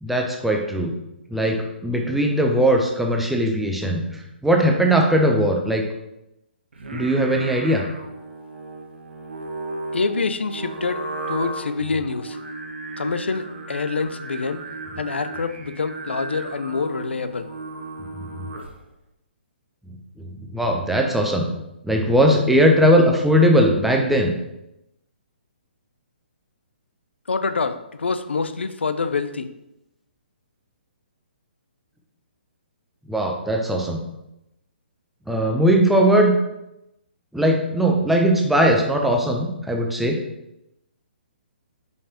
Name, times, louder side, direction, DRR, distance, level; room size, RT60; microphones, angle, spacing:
voice 1, 0.0-0.9 1.3-4.0 4.4-5.8 6.9-7.8 18.4-18.5 20.2-21.5 21.8-24.3 33.1-34.0 35.3-36.3 37.3-40.2, equal, ahead, 1 dB, 0.5 m, -19 dB
Singing, 6.7-18.9, right 2 dB, 75° right, 0.8 m, -35 dB
voice 2, 9.9-11.0 11.3-12.4 13.0-14.6 15.0-17.5 27.3-29.5, left 4 dB, 85° left, 10 dB, 0.4 m, -26 dB
5.4 x 3.2 x 2.9 m, 0.88 s
hypercardioid pair, 135°, 6 cm